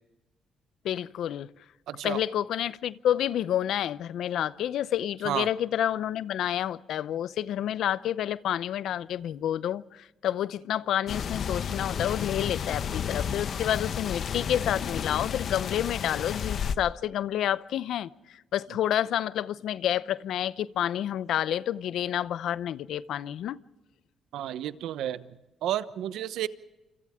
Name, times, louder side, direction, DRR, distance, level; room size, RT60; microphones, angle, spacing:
voice 1, 0.8-1.5 2.0-18.1 18.5-23.6, left 11 dB, 75° left, 0.7 m, -29 dB
voice 2, 1.9-2.2 5.2-5.5 24.3-26.5, right 12 dB, 85° right, 0.9 m, -32 dB
sound 1, 11.1-16.8, left 7 dB, 60° left, 1.0 m, -32 dB
28.0 x 27.0 x 3.7 m
cardioid pair, 90°, 0 cm